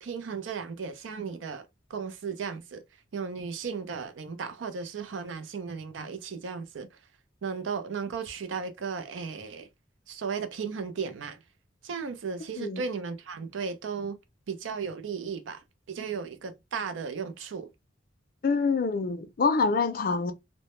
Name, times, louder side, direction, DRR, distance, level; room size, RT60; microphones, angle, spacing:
voice 1, 0.0-2.8 3.1-7.0 7.4-9.7 10.1-11.4 11.8-14.2 14.5-17.7, right 5 dB, 90° right, 0.4 m, -35 dB
voice 2, 18.4-20.3, left 4 dB, 50° left, 0.4 m, -26 dB
2.1 x 2.1 x 2.9 m
head